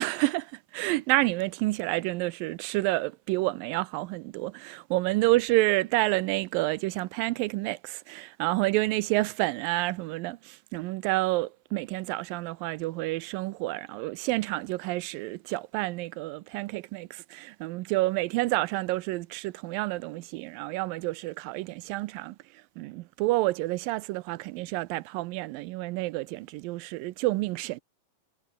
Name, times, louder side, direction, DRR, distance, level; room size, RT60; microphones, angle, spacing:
voice 1, 0.0-22.4 22.8-27.8, right 19 dB, 90° right, 2.4 m, -29 dB
omnidirectional pair, 3.9 m